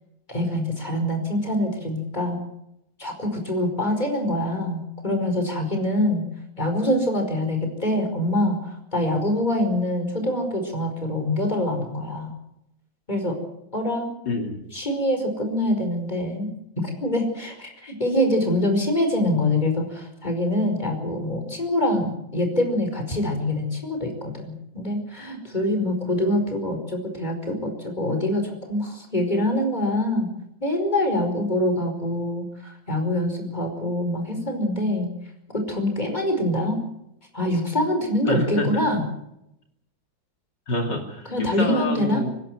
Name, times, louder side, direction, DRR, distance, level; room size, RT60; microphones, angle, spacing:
voice 1, 0.3-2.4 3.0-6.2 6.6-12.3 13.1-13.4 13.7-14.1 14.7-16.5 16.8-30.3 30.6-35.1 35.5-36.8 37.3-39.0 41.3-42.2, left 1 dB, 20° left, 4 dB, 5.2 m, -25 dB
voice 2, 14.2-14.6 38.2-38.8 40.7-42.3, left 2 dB, 65° left, 2 dB, 3.4 m, -27 dB
25.0 x 12.0 x 9.4 m, 0.83 s
omnidirectional pair, 2.1 m